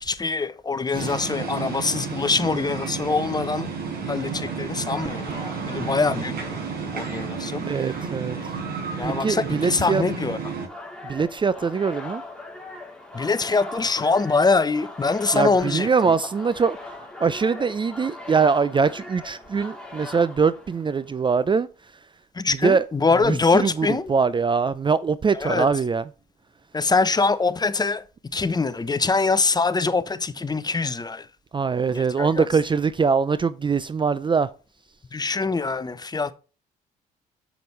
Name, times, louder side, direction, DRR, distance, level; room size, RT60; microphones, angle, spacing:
voice 1, 0.0-3.7 4.1-6.6 6.9-7.6 9.0-10.4 13.1-15.9 22.3-24.1 25.3-25.7 26.7-28.0 28.3-31.3 31.9-32.5 35.1-36.3, left 4 dB, 20° left, 0.9 m, -23 dB
sound 1, 0.9-10.7, right 5 dB, 60° right, 4.7 m, -31 dB
voice 2, 7.7-8.4 9.0-10.0 11.0-12.2 15.3-16.8 17.2-21.7 22.6-22.8 23.2-26.0 31.5-34.5, right 5 dB, 25° right, 0.5 m, -22 dB
sound 2, 10.7-21.2, left 2 dB, 5° left, 3.4 m, -39 dB
7.5 x 7.3 x 3.2 m
supercardioid pair, 65°, 18 cm